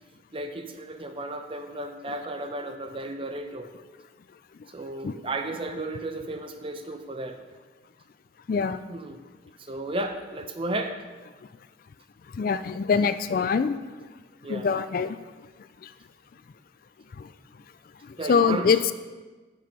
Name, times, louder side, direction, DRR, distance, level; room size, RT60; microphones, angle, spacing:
voice 1, 0.3-3.7 4.7-7.4 8.9-9.2 9.7-11.0 14.4-14.7 18.2-18.8, right 2 dB, 30° right, 6 dB, 0.6 m, -33 dB
voice 2, 8.5-8.8 12.3-13.8 14.5-15.2 18.3-18.8, left 5 dB, 50° left, 12 dB, 0.3 m, -23 dB
8.6 x 5.6 x 5.2 m, 1.3 s
head